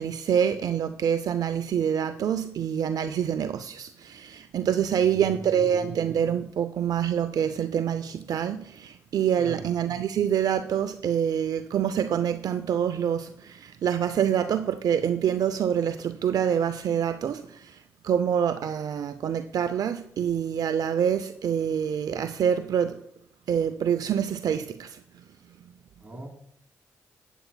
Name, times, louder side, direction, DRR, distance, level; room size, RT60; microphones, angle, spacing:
voice 1, 0.0-23.0 23.5-25.0, right 8 dB, 65° right, 0.4 m, -26 dB
voice 2, 5.0-5.9 9.4-9.7 26.0-26.3, right 1 dB, 20° right, 3.6 m, -41 dB
12.5 x 9.0 x 2.2 m
supercardioid pair, 45°, 7 cm